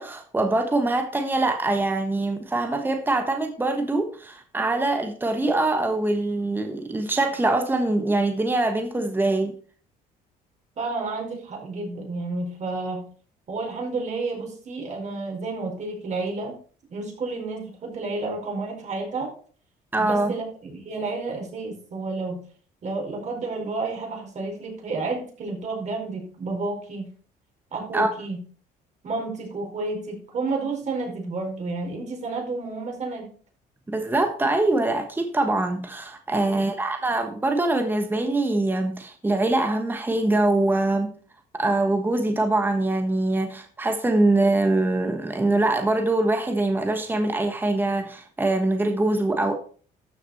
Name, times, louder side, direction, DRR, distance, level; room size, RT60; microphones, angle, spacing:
voice 1, 0.0-9.5 19.9-20.3 27.9-28.1 33.9-41.1 41.5-49.5, right 2 dB, 10° right, 1.3 m, -23 dB
voice 2, 10.8-13.1 13.5-16.5 16.9-19.3 20.0-22.4 22.8-27.1 27.7-28.4 29.0-33.3 36.4-36.7, right 3 dB, 45° right, 4.8 m, -31 dB
13.0 x 6.6 x 4.2 m
cardioid pair, 110°, 17 cm